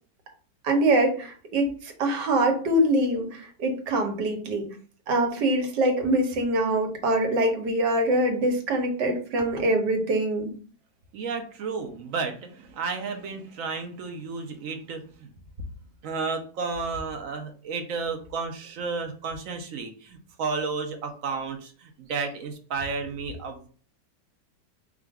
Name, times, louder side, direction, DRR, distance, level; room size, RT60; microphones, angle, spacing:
voice 1, 0.6-4.7 5.1-10.5, right 1 dB, 75° right, 3 dB, 1.5 m, -24 dB
voice 2, 11.1-15.3 16.0-23.7, right 4 dB, 60° right, 5 dB, 0.9 m, -32 dB
4.8 x 2.5 x 3.4 m, 0.42 s
omnidirectional pair, 1.9 m